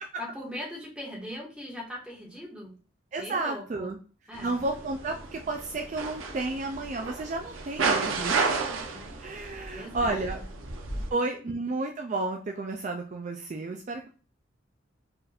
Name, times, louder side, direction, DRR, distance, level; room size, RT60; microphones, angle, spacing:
voice 1, 0.2-2.7 3.2-4.0 4.3-4.6 8.6-9.2 9.7-10.2 10.9-11.0, left 1 dB, 5° right, -3 dB, 1.2 m, -40 dB
voice 2, 3.1-4.0 4.4-8.4 9.2-10.4 11.1-14.1, right 2 dB, 40° right, 3 dB, 0.3 m, -32 dB
sound 1, 4.3-11.1, right 4 dB, 85° right, 0.7 m, -32 dB
4.5 x 2.5 x 3.4 m, 0.37 s
head